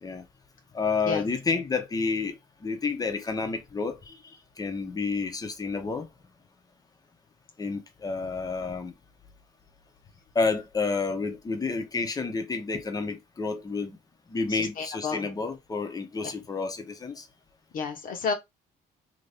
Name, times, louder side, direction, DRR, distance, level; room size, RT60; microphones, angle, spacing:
voice 1, 0.7-2.3 2.6-4.2 4.6-6.1 7.6-8.9 10.3-14.0 14.3-17.3, left 4 dB, 20° left, 0.8 m, -30 dB
voice 2, 14.5-15.3 16.2-16.3 17.7-18.3, left 5 dB, 55° left, 0.9 m, -31 dB
3.0 x 2.7 x 3.4 m
cardioid pair, 110°, 17 cm